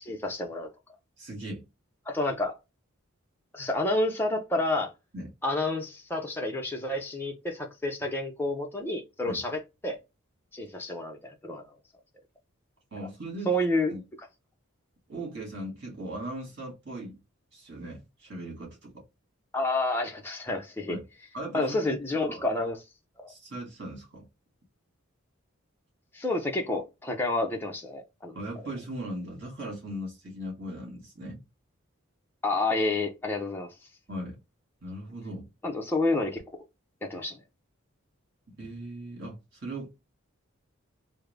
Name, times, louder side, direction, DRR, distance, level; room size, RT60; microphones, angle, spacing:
voice 1, 0.1-0.7 2.1-2.6 3.5-4.9 5.4-10.0 10.5-11.7 13.5-13.9 19.5-21.0 21.5-22.8 23.2-23.3 26.1-28.4 32.4-33.7 35.6-36.4 37.0-37.4, left 2 dB, 10° left, 0.5 m, -29 dB
voice 2, 1.2-1.7 5.1-5.3 9.2-9.4 12.9-13.6 13.9-14.0 15.1-17.2 17.5-19.0 20.9-21.0 21.3-22.5 23.3-24.3 28.3-31.4 34.1-34.4 34.8-35.5 38.6-39.9, right 1 dB, 50° right, 1.8 m, -38 dB
3.6 x 2.0 x 3.2 m
head